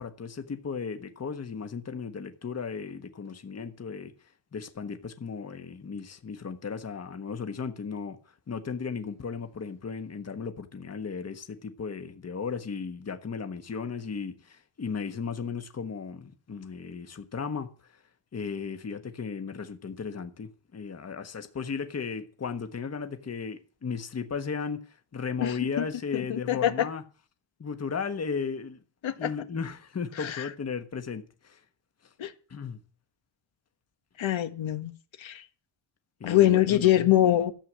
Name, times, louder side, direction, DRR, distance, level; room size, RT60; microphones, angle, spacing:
voice 1, 0.0-4.1 4.5-18.0 18.3-27.0 27.6-28.8 29.2-31.6 32.5-32.8 36.2-37.1, left 5 dB, 30° left, 1.4 m, -35 dB
voice 2, 26.1-26.7 29.0-29.3 30.2-30.5 32.2-32.3 34.2-34.9 35.2-35.4 36.2-37.5, left 13 dB, 75° left, 1.6 m, -23 dB
13.5 x 7.7 x 7.5 m
cardioid pair, 120°, 47 cm